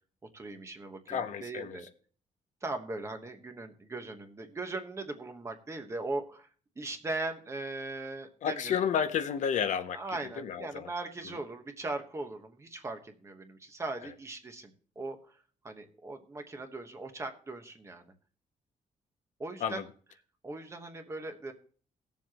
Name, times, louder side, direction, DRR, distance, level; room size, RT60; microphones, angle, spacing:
voice 1, 0.3-1.9 2.6-6.5 6.8-8.8 9.9-15.4 15.6-18.1 19.4-19.8 20.4-21.5, right 2 dB, 20° right, 1.2 m, -39 dB
voice 2, 1.1-1.8 8.4-10.0 10.4-10.9 19.6-19.8, left 7 dB, 60° left, 0.7 m, -31 dB
18.5 x 7.2 x 3.0 m
cardioid pair, 170°, 14 cm